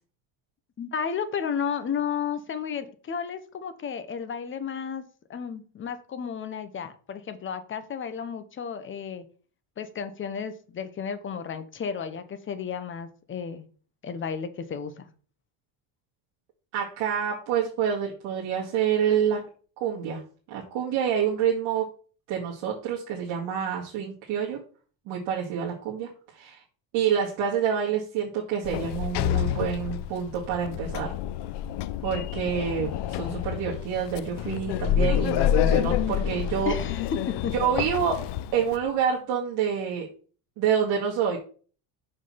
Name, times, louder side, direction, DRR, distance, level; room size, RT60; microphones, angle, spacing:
voice 1, 0.8-9.3 9.8-13.7 14.0-15.1 36.6-37.5, left 7 dB, 25° left, 11 dB, 0.8 m, -33 dB
voice 2, 16.7-19.4 19.8-20.2 20.5-21.9 22.3-24.6 25.1-26.6 26.9-31.1 32.0-36.7 37.6-38.2 38.5-40.1 40.6-41.4, right 8 dB, 75° right, -3 dB, 2.0 m, -27 dB
Sliding door, 28.6-38.8, left 10 dB, 55° left, 0.6 m, -28 dB
6.1 x 5.4 x 5.7 m, 0.40 s
cardioid pair, 160°, 48 cm